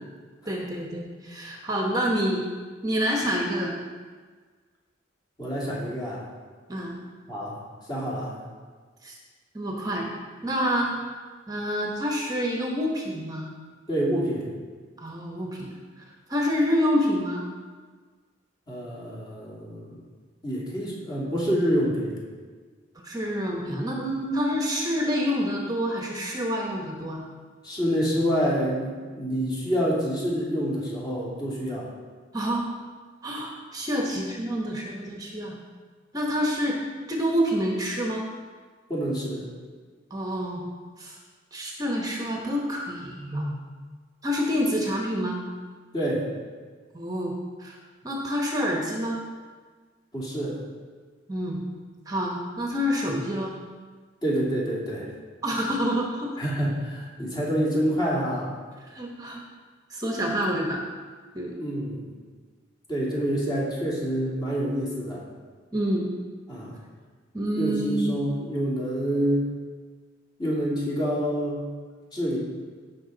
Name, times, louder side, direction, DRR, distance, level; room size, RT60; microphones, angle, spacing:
voice 1, 0.5-2.4 2.8-3.8 6.7-7.0 9.0-9.1 9.5-10.1 10.4-11.0 11.5-13.5 15.0-15.7 16.0-16.1 16.3-17.4 23.0-27.2 32.3-32.7 33.2-35.6 36.1-36.8 37.1-38.3 40.1-40.7 41.0-41.2 41.5-43.6 44.2-45.4 46.9-47.3 47.6-47.8 48.0-49.2 51.3-51.6 52.1-53.5 55.4-56.4 58.9-59.4 59.9-60.8 61.3-61.5 65.7-66.1 67.3-68.2, equal, 20° right, 0 dB, 1.1 m, -27 dB
voice 2, 5.4-6.2 7.3-7.6 7.9-8.4 13.9-14.5 18.7-20.0 20.4-22.1 27.6-31.9 38.9-39.5 45.9-46.3 50.1-50.6 54.2-55.1 56.4-58.5 61.6-62.1 62.9-65.2 66.5-66.8 67.5-69.5 70.4-71.7 72.1-72.4, equal, 20° left, -5 dB, 2.7 m, -27 dB
16.5 x 6.2 x 4.0 m, 1.5 s
head